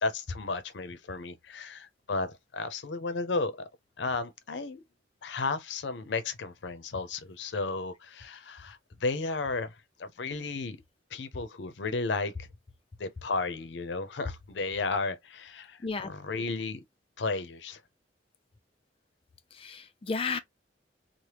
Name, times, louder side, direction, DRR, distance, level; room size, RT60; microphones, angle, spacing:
voice 1, 0.0-3.7 4.0-4.8 5.2-10.8 11.1-12.5 13.0-16.8 17.2-17.8, left 3 dB, 75° left, 0.6 m, -33 dB
voice 2, 15.8-16.1 19.5-20.4, left 4 dB, 30° left, 0.4 m, -33 dB
3.3 x 2.1 x 2.9 m
head